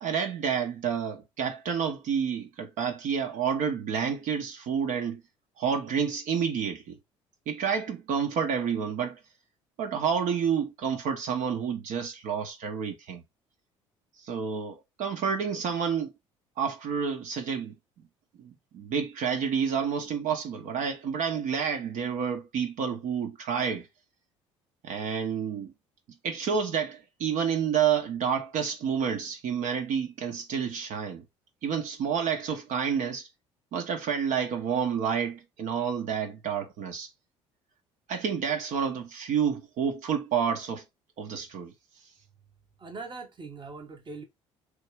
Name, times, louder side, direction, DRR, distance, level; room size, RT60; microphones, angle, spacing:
voice 1, 0.0-5.2 5.6-7.0 7.5-9.2 9.8-13.2 14.2-16.1 16.6-17.7 18.4-23.9 24.8-25.7 26.2-31.2 31.6-33.3 33.7-37.1 38.1-40.8 41.2-41.7, right 7 dB, 50° right, 1.0 m, -29 dB
voice 2, 42.8-44.2, right 3 dB, 30° right, 1.3 m, -41 dB
4.2 x 3.2 x 3.3 m
figure-of-eight pair, 60°, 16 cm